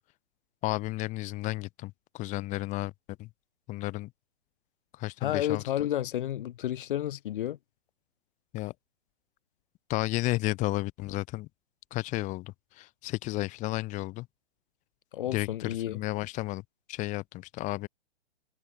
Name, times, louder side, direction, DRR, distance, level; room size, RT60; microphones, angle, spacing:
voice 1, 0.6-2.9 3.2-3.3 3.7-4.1 4.9-5.6 8.5-8.7 9.9-11.5 11.9-14.3 15.3-17.9, left 19 dB, 20° left, 1.8 m, -32 dB
voice 2, 5.2-7.6 15.1-16.0, left 12 dB, 50° left, 4.1 m, -31 dB
hypercardioid pair, 135°, 34 cm